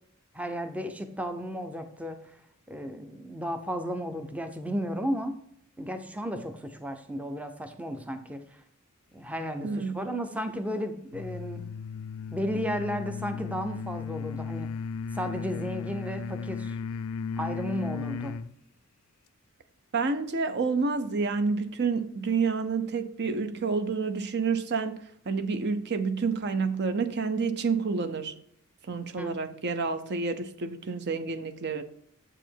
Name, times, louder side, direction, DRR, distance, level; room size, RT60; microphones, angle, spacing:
voice 1, 0.3-2.2 2.7-5.3 5.8-8.6 9.1-11.7 12.3-14.7 15.1-16.7 17.4-18.4 29.2-29.4, equal, 5° right, 0.5 m, -34 dB
voice 2, 9.6-10.0 19.9-28.3 28.8-31.8, right 4 dB, 55° right, 0.6 m, -29 dB
sound 1, 11.1-18.5, left 5 dB, 75° left, 0.4 m, -35 dB
7.7 x 4.9 x 4.5 m
head